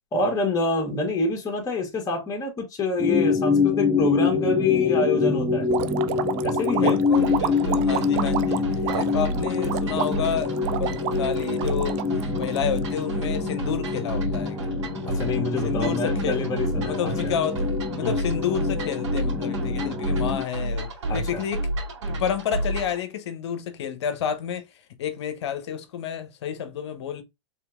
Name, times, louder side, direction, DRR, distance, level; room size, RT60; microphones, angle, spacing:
voice 1, 0.1-5.7 6.4-7.0 15.0-17.3 18.0-18.2 21.0-21.4, left 2 dB, 20° left, 1.4 m, -27 dB
sound 1, 3.0-20.4, left 5 dB, 15° right, 1.2 m, -26 dB
sound 2, 5.7-13.0, right 13 dB, 35° right, 0.3 m, -30 dB
voice 2, 6.8-14.6 15.6-16.4 16.7-21.7 22.1-27.2, left 8 dB, 60° left, 0.8 m, -30 dB
sound 3, 7.1-23.0, right 1 dB, 70° right, 2.2 m, -31 dB
4.3 x 3.5 x 2.4 m
figure-of-eight pair, 105°, 16 cm